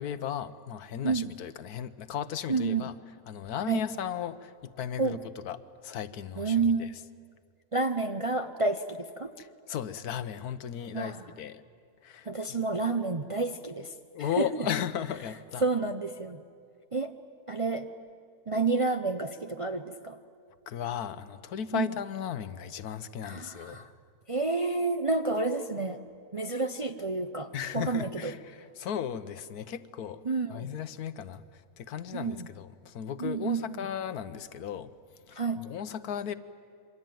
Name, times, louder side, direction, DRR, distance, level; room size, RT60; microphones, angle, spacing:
voice 1, 0.0-2.9 3.3-5.2 5.4-6.9 9.4-11.6 12.0-12.3 14.1-15.6 20.7-23.8 27.5-30.2 30.5-34.9 35.3-36.3, left 8 dB, 85° left, 1.4 m, -36 dB
voice 2, 2.5-2.9 3.7-3.8 5.0-5.2 6.4-7.0 7.7-9.3 10.9-11.2 12.3-14.5 15.6-16.4 16.9-17.1 17.5-17.9 18.5-20.2 21.7-21.9 23.2-23.9 24.3-26.0 26.3-28.3 30.2-30.8 32.1-32.5 33.2-33.9 35.3-35.6, right 3 dB, 35° right, 0.5 m, -30 dB
27.0 x 23.5 x 9.2 m
omnidirectional pair, 1.6 m